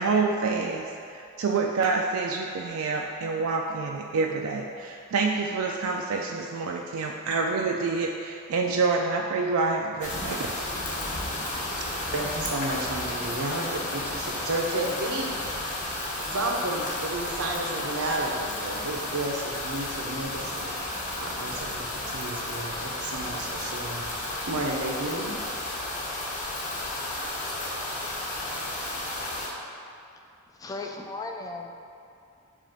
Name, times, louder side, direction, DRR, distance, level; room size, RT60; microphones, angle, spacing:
voice 1, 0.0-10.5, right 4 dB, 65° right, 1 dB, 0.4 m, -27 dB
sound 1, 10.0-29.5, left 1 dB, 35° left, 0.9 m, -33 dB
voice 2, 12.1-15.3 16.0-20.7 21.2-25.3, right 2 dB, 85° right, 0 dB, 0.8 m, -32 dB
voice 3, 30.6-31.8, left 3 dB, 15° left, 3 dB, 0.3 m, -36 dB
7.3 x 2.5 x 5.2 m, 2.6 s
head